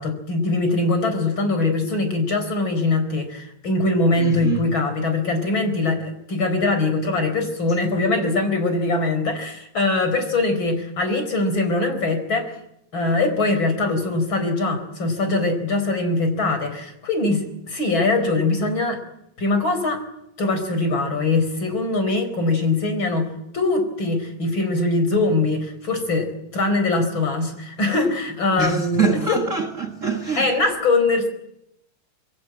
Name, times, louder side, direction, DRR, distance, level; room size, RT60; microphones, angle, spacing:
voice 1, 0.0-12.5 12.9-19.0 19.4-20.0 20.4-29.3 30.4-31.3, left 2 dB, 30° left, 5.0 m, -22 dB
voice 2, 4.2-4.7 28.6-30.5, right 5 dB, 90° right, 0.6 m, -24 dB
26.0 x 22.5 x 8.8 m
omnidirectional pair, 4.4 m